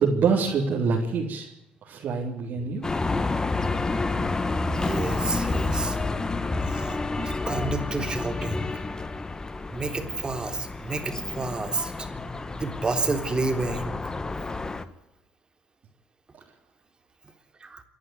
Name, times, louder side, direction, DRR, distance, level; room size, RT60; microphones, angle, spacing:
voice 1, 0.0-1.5 1.8-2.9, right 5 dB, 60° right, -3 dB, 3.9 m, -25 dB
sound 1, 2.8-14.8, left 3 dB, 20° left, 1.6 m, -29 dB
voice 2, 4.7-6.0 6.7-8.7 9.7-12.1 12.6-13.9 17.6-17.8, right 3 dB, 25° right, 7 dB, 3.6 m, -30 dB
28.0 x 11.5 x 9.6 m, 0.87 s
cardioid pair, 90°, 3 cm